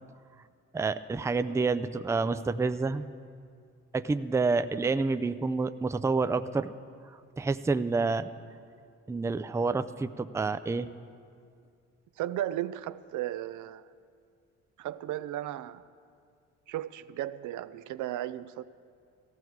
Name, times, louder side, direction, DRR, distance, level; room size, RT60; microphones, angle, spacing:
voice 1, 0.7-3.0 3.9-6.7 7.4-8.3 9.1-10.9, right 4 dB, 10° right, 0.4 m, -28 dB
voice 2, 12.2-13.9 14.8-15.8 16.7-18.6, right 13 dB, 75° right, 0.6 m, -35 dB
17.5 x 14.5 x 4.7 m
cardioid pair, 90°, 30 cm